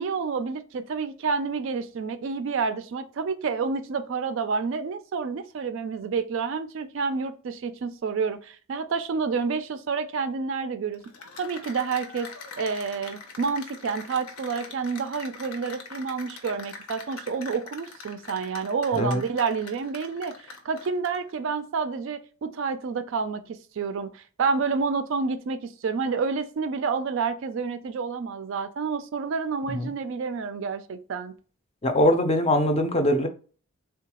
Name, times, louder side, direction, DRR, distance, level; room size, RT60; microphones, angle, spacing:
voice 1, 0.0-11.0 11.4-12.3 12.6-20.3 20.6-31.3, right 5 dB, 55° right, 0.3 m, -29 dB
Cheering / Applause, 10.9-21.3, left 4 dB, 75° left, 0.7 m, -43 dB
voice 2, 31.8-33.3, left 1 dB, 25° left, 0.4 m, -22 dB
3.7 x 2.3 x 2.9 m
head